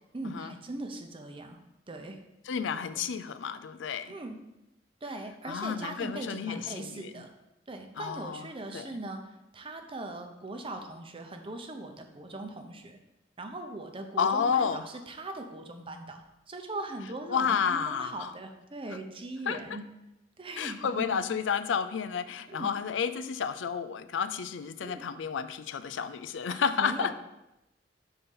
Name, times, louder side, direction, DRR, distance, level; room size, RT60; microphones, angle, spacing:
voice 1, 0.1-1.6 1.9-2.2 2.9-3.1 4.1-4.4 5.0-7.3 7.7-13.0 13.4-16.2 16.5-19.8 20.4-21.1 22.5-22.7 24.8-25.0 26.5-27.1, right 2 dB, 30° right, 5 dB, 0.8 m, -40 dB
voice 2, 2.5-4.2 5.5-7.1 8.0-8.4 8.7-8.9 14.2-14.8 17.3-18.3 19.5-19.6 20.6-27.1, left 6 dB, 85° left, 12 dB, 0.4 m, -31 dB
6.6 x 4.3 x 5.4 m, 0.91 s
head